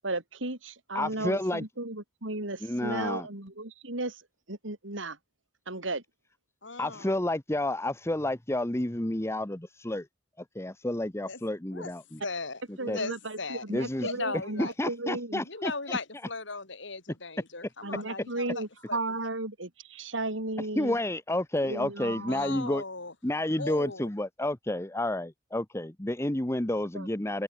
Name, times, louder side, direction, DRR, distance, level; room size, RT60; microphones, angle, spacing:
voice 1, 0.0-4.2 4.5-5.2 5.7-6.0 12.8-15.4 17.8-21.0 21.6-22.6 26.9-27.1, right 2 dB, 75° right, 4.6 m, -35 dB
voice 2, 0.9-1.6 2.6-3.3 6.8-10.1 10.4-12.2 12.7-13.0 13.7-16.0 20.6-22.8 23.2-27.4, left 1 dB, 15° left, 1.0 m, -30 dB
voice 3, 6.6-7.1 11.3-11.4 11.7-11.9 12.2-13.6 14.0-14.7 15.4-19.0 22.3-23.1 23.6-24.1, left 3 dB, 65° left, 4.9 m, -37 dB
head